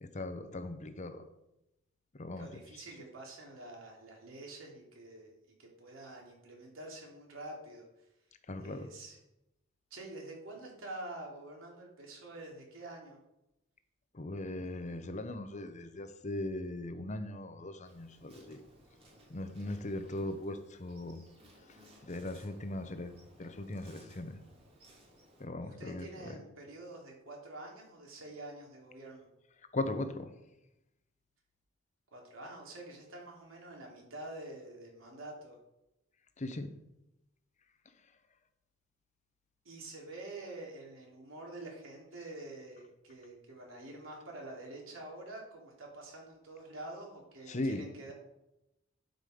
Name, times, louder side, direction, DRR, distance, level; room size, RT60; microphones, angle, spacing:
voice 1, 0.0-1.2 2.1-2.5 8.5-8.9 14.1-18.6 19.3-21.2 21.6-23.1 23.4-24.4 25.4-26.4 29.7-30.3 36.4-36.7 47.5-47.9, left 2 dB, 35° left, 9 dB, 0.8 m, -39 dB
voice 2, 2.4-5.3 5.6-7.9 8.6-9.2 9.9-13.2 19.9-20.0 25.6-29.3 32.1-35.6 39.6-48.1, right 2 dB, 90° right, -1 dB, 3.0 m, -47 dB
Insect, 17.8-25.4, equal, 30° right, 2.6 m, -61 dB
12.0 x 5.4 x 5.0 m, 0.90 s
head